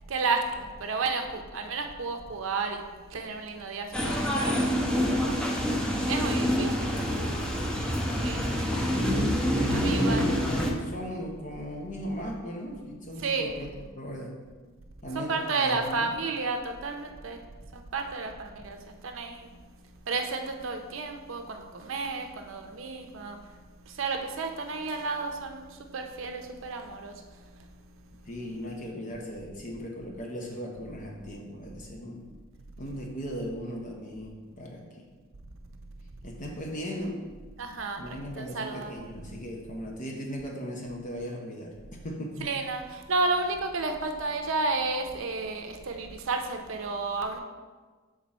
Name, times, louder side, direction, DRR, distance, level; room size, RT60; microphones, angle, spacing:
voice 1, 0.1-0.4 0.8-2.8 3.1-4.8 5.1-5.4 6.1-7.4 8.2-8.4 9.7-10.3 13.2-13.5 15.1-17.4 17.7-18.8 19.0-19.5 20.1-23.4 24.0-25.7 25.9-27.1 37.6-39.0 42.4-47.4, right 3 dB, 70° right, 5 dB, 0.6 m, -32 dB
sound 1, 3.9-10.7, equal, 5° left, 0.8 m, -26 dB
voice 2, 9.7-13.7 14.0-14.4 15.0-16.1 28.3-32.2 32.8-35.1 36.2-37.2 38.0-42.5, equal, 40° left, 0 dB, 0.8 m, -38 dB
7.4 x 3.7 x 4.2 m, 1.4 s
head